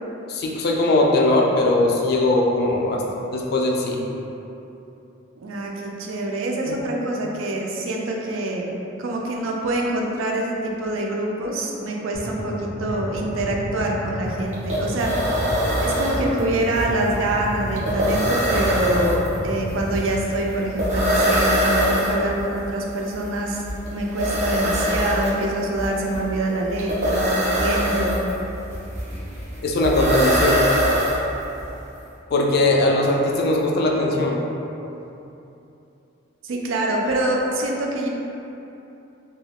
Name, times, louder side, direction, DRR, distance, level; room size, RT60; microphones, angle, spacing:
voice 1, 0.3-3.0 3.3-4.0 6.7-6.8 29.6-30.7 32.3-34.4, left 2 dB, 55° left, -1 dB, 0.3 m, -20 dB
voice 2, 5.4-8.7 9.0-15.3 15.8-23.6 23.9-28.2 36.4-38.1, right 1 dB, 85° right, -1 dB, 0.4 m, -25 dB
sound 1, 12.1-20.1, equal, 90° left, 0.8 m, -32 dB
sound 2, 14.2-14.3 14.5-31.6, equal, 35° right, 0.6 m, -23 dB
2.3 x 2.3 x 3.3 m, 2.9 s
head